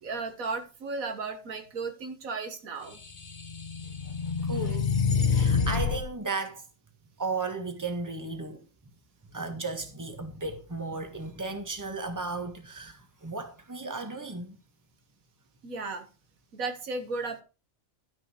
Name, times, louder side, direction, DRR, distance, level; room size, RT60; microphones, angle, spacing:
voice 1, 0.0-3.0 15.6-16.1 16.5-17.4, right 4 dB, 90° right, 1.9 m, -35 dB
sound 1, 3.1-6.1, left 6 dB, 40° left, 1.2 m, -27 dB
voice 2, 4.4-4.9 5.2-6.7 7.2-8.7 9.3-14.6, right 3 dB, 15° right, 1.5 m, -35 dB
12.0 x 6.4 x 4.4 m
omnidirectional pair, 1.4 m